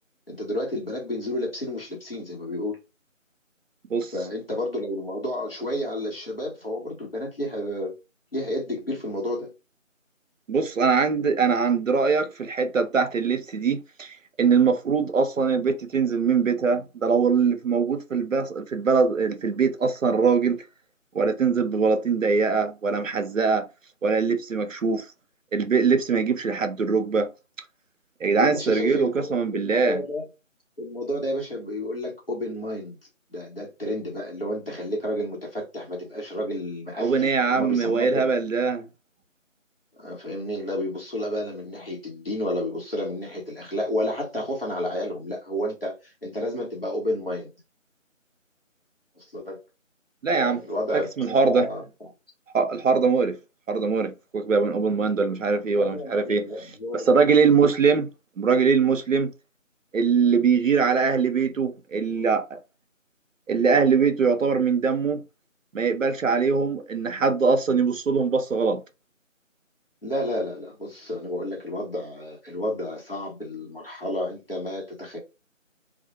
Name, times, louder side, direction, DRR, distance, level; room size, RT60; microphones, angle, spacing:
voice 1, 0.3-2.8 4.1-7.9 8.3-9.5 28.4-30.3 30.8-33.0 33.3-38.3 40.0-47.5 49.2-49.6 50.3-51.8 55.7-57.5 70.0-75.2, left 1 dB, 45° left, 0.9 m, -31 dB
voice 2, 10.5-20.6 21.1-23.7 24.0-25.1 25.5-27.3 28.2-30.0 37.0-38.9 50.2-50.6 50.9-51.7 52.5-53.4 53.7-56.5 56.9-58.1 58.4-59.3 59.9-62.6 63.5-65.2 65.7-68.8, right 5 dB, 70° right, 0.5 m, -22 dB
2.1 x 2.0 x 2.9 m
figure-of-eight pair, 175°, 40 cm